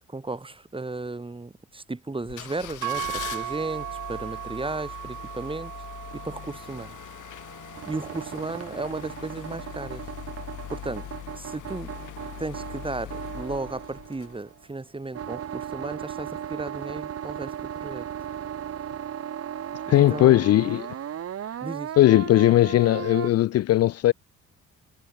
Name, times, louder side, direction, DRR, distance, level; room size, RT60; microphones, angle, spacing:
voice 1, 0.1-5.7 6.1-7.0 7.8-10.0 10.7-11.1 11.4-11.9 12.4-18.1 19.9-20.4 21.6-21.9, right 3 dB, 15° right, 3.1 m, -35 dB
sound 1, 2.2-14.7 15.2-15.3, left 13 dB, 80° left, 5.6 m, -41 dB
sound 2, 2.8-11.1, right 12 dB, 75° right, 3.7 m, -38 dB
sound 3, 7.7-14.6 15.1-23.3, right 10 dB, 50° right, 1.2 m, -36 dB
voice 2, 19.9-20.9 22.0-24.1, left 14 dB, 55° left, 0.4 m, -18 dB
cardioid pair, 90°, 30 cm